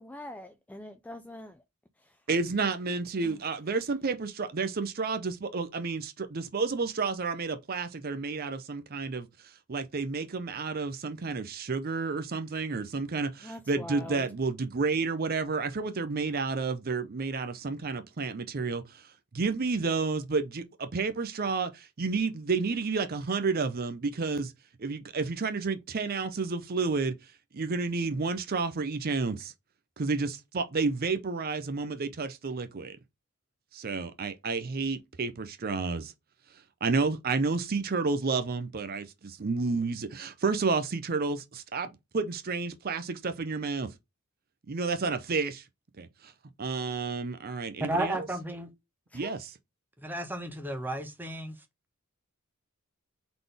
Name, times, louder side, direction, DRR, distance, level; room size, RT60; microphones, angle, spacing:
voice 1, 0.0-1.6 3.2-3.4 13.4-14.3 49.1-49.3, left 1 dB, 5° left, 0.3 m, -43 dB
voice 2, 2.3-9.3 9.7-19.0 19.3-24.5 24.8-27.2 27.5-29.5 30.0-33.0 33.7-36.1 36.8-43.9 44.7-45.6 46.0-46.3 46.6-48.2 49.1-49.5, right 4 dB, 45° right, 0.5 m, -30 dB
voice 3, 47.8-48.7 50.0-51.6, right 1 dB, 10° right, 0.8 m, -33 dB
4.0 x 3.8 x 3.3 m
head